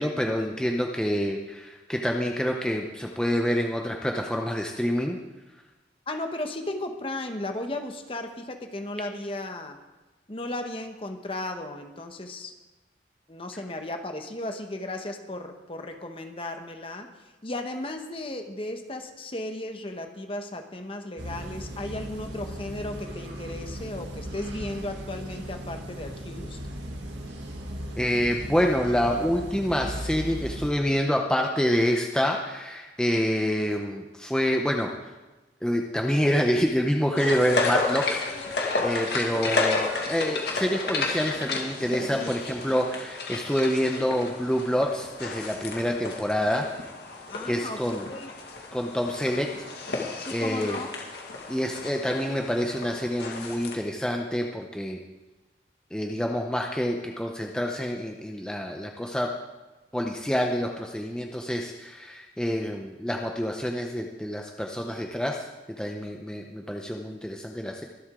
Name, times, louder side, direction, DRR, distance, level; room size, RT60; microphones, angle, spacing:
voice 1, 0.0-5.2 28.0-35.1 35.6-38.2 38.5-46.7 47.5-48.1 48.7-49.5 49.8-50.8 51.5-55.0 55.9-59.3 59.9-65.4 65.8-67.8, equal, 5° left, 1 dB, 0.7 m, -27 dB
voice 2, 6.1-9.8 10.3-12.5 13.3-17.1 17.4-26.6 47.3-48.3 50.2-51.0, left 1 dB, 30° left, 5 dB, 1.0 m, -35 dB
sound 1, 21.2-30.7, equal, 90° right, 1.8 m, -37 dB
sound 2, 37.2-53.7, left 3 dB, 65° left, 2.0 m, -32 dB
23.5 x 7.9 x 3.7 m, 1.1 s
head